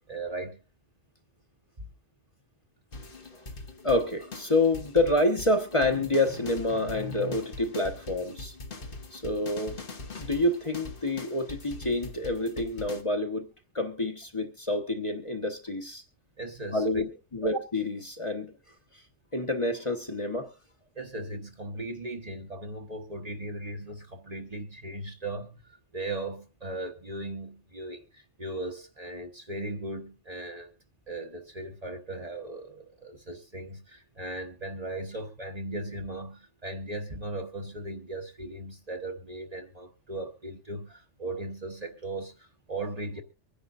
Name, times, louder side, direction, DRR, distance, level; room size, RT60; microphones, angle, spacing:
voice 1, 0.1-0.6 1.8-1.9 16.4-17.0 20.9-25.6 25.9-30.7 31.1-43.2, right 2 dB, 35° right, 1.2 m, -38 dB
sound 1, 2.9-13.0, left 3 dB, 50° left, 1.4 m, -42 dB
voice 2, 3.8-8.5 9.1-9.8 10.2-13.5 13.7-16.0 16.7-18.6 18.9-19.0 19.3-20.5, left 2 dB, 30° left, 1.3 m, -28 dB
24.5 x 10.5 x 2.6 m
omnidirectional pair, 1.2 m